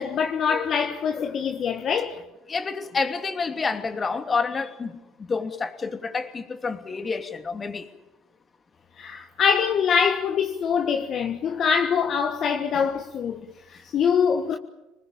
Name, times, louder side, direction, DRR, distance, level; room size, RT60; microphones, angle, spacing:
voice 1, 0.0-2.2 9.0-14.6, left 6 dB, 50° left, 1.6 m, -24 dB
voice 2, 2.5-7.9, left 4 dB, 30° left, 2.8 m, -29 dB
25.5 x 20.0 x 8.8 m
hypercardioid pair, 80°, 0 cm